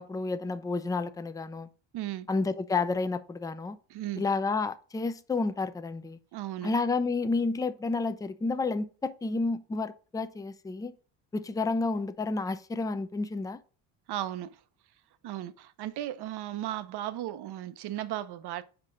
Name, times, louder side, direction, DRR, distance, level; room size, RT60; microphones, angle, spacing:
voice 1, 0.0-1.7 2.3-3.8 4.2-6.2 6.6-10.9 11.3-13.6, left 3 dB, 10° left, 0.4 m, -30 dB
voice 2, 1.9-2.3 3.9-4.2 6.3-6.7 14.1-14.6 15.2-18.6, right 13 dB, 55° right, 0.7 m, -35 dB
5.9 x 4.8 x 3.8 m
supercardioid pair, 90°, 46 cm